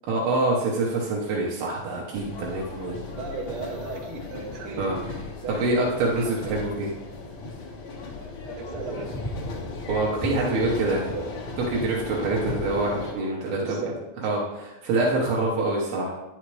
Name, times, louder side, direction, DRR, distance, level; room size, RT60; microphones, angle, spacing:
voice 1, 0.1-2.9 4.8-5.0 5.5-6.9 9.9-11.0 11.7-13.8 14.2-16.1, right 2 dB, 85° right, -4 dB, 2.9 m, -25 dB
sound 1, 2.1-13.1, left 3 dB, 50° left, 1.5 m, -35 dB
voice 2, 3.1-5.8 6.1-6.7 8.5-9.3 10.3-11.3 12.1-12.5 13.6-13.9, right 4 dB, 65° right, -1 dB, 1.3 m, -36 dB
10.0 x 6.4 x 3.2 m, 1.0 s
omnidirectional pair, 4.2 m